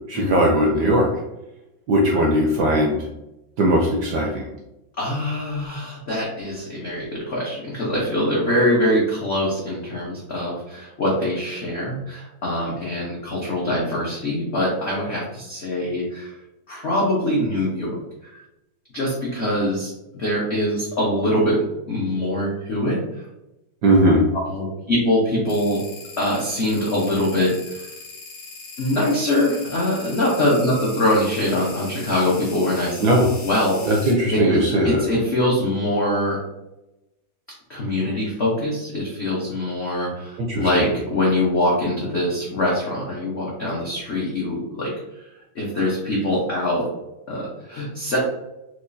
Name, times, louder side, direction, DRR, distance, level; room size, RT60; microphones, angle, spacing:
voice 1, 0.1-1.1 1.9-3.1 3.6-4.5 23.8-24.3 33.0-33.3 33.9-35.0 40.5-40.9, right 1 dB, 75° right, -1 dB, 0.9 m, -19 dB
voice 2, 5.0-16.4 16.7-18.0 18.2-18.4 18.9-21.6 21.9-23.2 24.3-25.8 26.2-27.9 28.8-33.0 33.4-36.4 37.7-45.2 45.5-46.9 47.3-48.2, left 1 dB, 75° left, -4 dB, 0.6 m, -23 dB
sound 1, 25.5-34.1, left 3 dB, 55° left, 1.0 m, -39 dB
4.7 x 2.3 x 2.5 m, 0.94 s
omnidirectional pair, 2.2 m